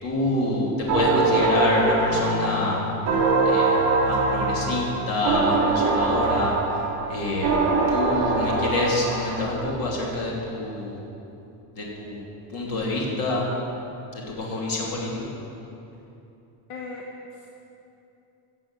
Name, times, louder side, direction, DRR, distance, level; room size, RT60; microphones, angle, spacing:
voice 1, 0.0-3.0 3.4-3.8 4.0-6.6 7.1-7.6 7.9-11.0 11.7-12.2 12.5-13.4 14.1-15.3, left 2 dB, 40° left, -3 dB, 3.1 m, -27 dB
sound 1, 0.9-9.6, right 3 dB, 30° right, 2.1 m, -23 dB
voice 2, 16.7-17.5, left 3 dB, 60° left, -1 dB, 1.4 m, -38 dB
15.0 x 7.5 x 7.5 m, 2.9 s
cardioid pair, 175°, 49 cm